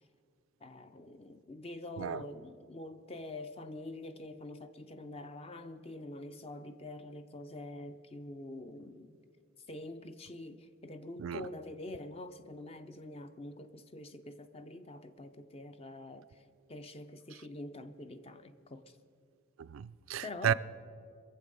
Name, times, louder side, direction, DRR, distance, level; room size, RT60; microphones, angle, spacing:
voice 1, 0.6-9.2 9.7-16.4 16.7-19.0 20.2-20.5, left 2 dB, 30° left, 0.5 m, -45 dB
voice 2, 19.6-20.5, right 8 dB, 75° right, 0.3 m, -33 dB
22.0 x 7.5 x 5.3 m
head